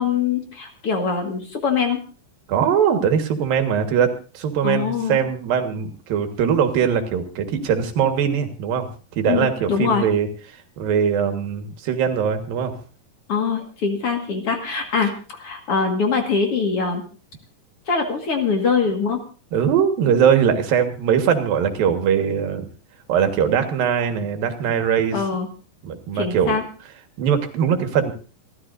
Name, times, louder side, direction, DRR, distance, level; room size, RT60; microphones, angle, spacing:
voice 1, 0.0-2.0 4.6-5.2 9.3-10.0 13.3-17.0 17.9-19.2 25.1-25.5 26.1-26.6, left 5 dB, 50° left, 4 dB, 2.4 m, -23 dB
voice 2, 2.5-8.9 9.2-10.3 10.8-12.7 19.5-22.6 23.1-25.2 25.8-26.6 27.2-28.1, right 7 dB, 90° right, 7 dB, 3.4 m, -21 dB
27.5 x 13.0 x 2.6 m, 0.37 s
omnidirectional pair, 4.0 m